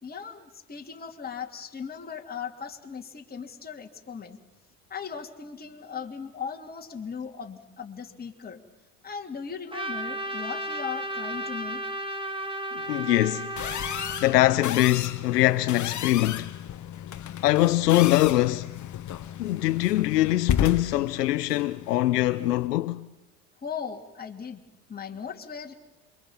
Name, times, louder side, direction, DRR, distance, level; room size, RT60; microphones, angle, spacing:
voice 1, 0.0-4.4 4.9-8.6 9.0-12.2 23.6-24.6 24.9-25.7, left 6 dB, 20° left, 2.8 m, -38 dB
Trumpet, 9.7-14.4, right 1 dB, 10° right, 2.0 m, -34 dB
voice 2, 12.7-13.5 14.2-16.5 17.4-18.7 19.4-23.1, left 16 dB, 85° left, 0.8 m, -23 dB
sound 1, 13.6-22.7, left 9 dB, 40° left, 1.4 m, -33 dB
27.5 x 23.5 x 7.4 m
hypercardioid pair, 85°, 47 cm